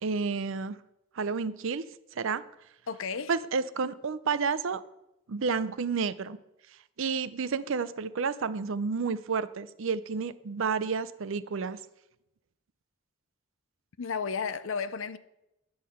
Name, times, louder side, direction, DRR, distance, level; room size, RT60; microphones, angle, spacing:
voice 1, 0.0-0.8 1.1-1.9 2.1-2.4 3.3-4.8 5.3-6.4 7.0-11.8, right 5 dB, 65° right, 0.5 m, -30 dB
voice 2, 2.9-3.3 14.0-15.2, left 5 dB, 65° left, 0.5 m, -33 dB
10.5 x 5.5 x 7.7 m
head